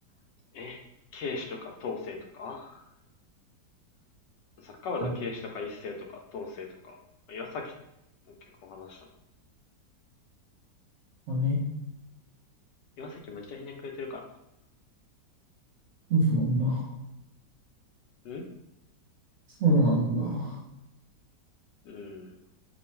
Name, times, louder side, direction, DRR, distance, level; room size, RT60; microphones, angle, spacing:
voice 1, 1.1-2.8 4.6-7.0 7.3-7.7 8.3-8.4 8.6-9.1 13.0-14.2 18.2-18.4 21.8-22.4, left 4 dB, 80° left, 2 dB, 1.2 m, -38 dB
voice 2, 11.3-11.6 16.1-16.9 19.6-20.6, right 1 dB, 50° right, -4 dB, 1.0 m, -25 dB
3.0 x 2.3 x 4.2 m, 0.87 s
omnidirectional pair, 1.9 m